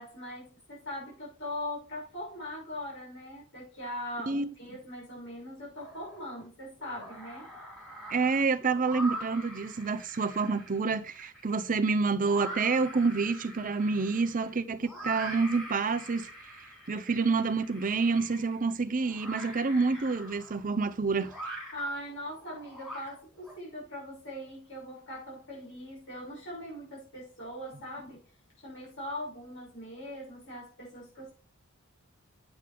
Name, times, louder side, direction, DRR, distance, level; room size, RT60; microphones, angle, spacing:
voice 1, 0.0-7.5 21.7-28.2 28.6-31.3, left 1 dB, 55° left, 6.0 m, -41 dB
sound 1, 5.8-6.4 6.8-23.5, right 1 dB, ahead, 5.5 m, -44 dB
voice 2, 8.1-16.3 16.9-21.3, right 4 dB, 40° right, 0.6 m, -28 dB
9.0 x 8.4 x 3.4 m
head